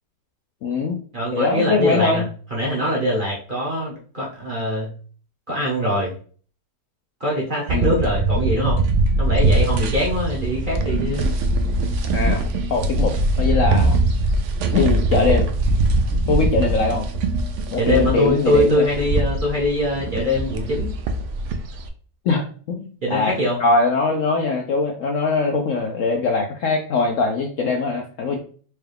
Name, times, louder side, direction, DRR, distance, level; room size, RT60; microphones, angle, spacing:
voice 1, 0.6-1.0 1.3-2.2 7.7-8.0 12.1-12.4 12.7-14.0 14.7-15.5 16.3-17.1 17.7-18.9 22.2-28.4, left 3 dB, 70° left, 2 dB, 0.7 m, -21 dB
voice 2, 1.1-2.2 2.5-4.9 5.5-6.1 7.2-8.8 9.2-11.3 17.8-20.9 23.0-23.6, left 1 dB, 40° right, -4 dB, 0.8 m, -22 dB
sound 1, 7.7-21.9, right 2 dB, 75° right, 0.7 m, -21 dB
4.6 x 2.3 x 3.3 m, 0.43 s
omnidirectional pair, 1.8 m